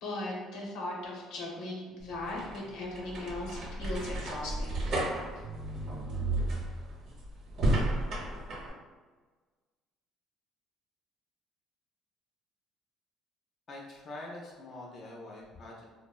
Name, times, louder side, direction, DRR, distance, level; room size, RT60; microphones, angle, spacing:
voice 1, 0.0-5.0, left 2 dB, 75° left, -2 dB, 0.8 m, -38 dB
sound 1, 2.0-8.7, right 1 dB, 55° right, 0.7 m, -33 dB
voice 2, 13.7-15.8, left 2 dB, 40° left, -3 dB, 0.4 m, -44 dB
3.4 x 2.0 x 2.2 m, 1.4 s
cardioid pair, 120°, 0 cm